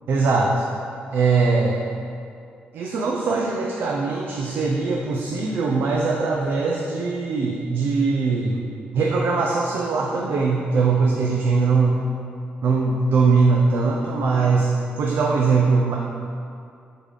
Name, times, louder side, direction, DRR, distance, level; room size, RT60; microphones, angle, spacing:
voice 1, 0.1-0.5 1.1-1.8 2.7-8.6 8.9-12.0 12.6-14.7 15.0-16.0, right 4 dB, 65° right, -1 dB, 0.6 m, -21 dB
8.1 x 3.9 x 3.7 m, 2.4 s
cardioid pair, 135°, 4 cm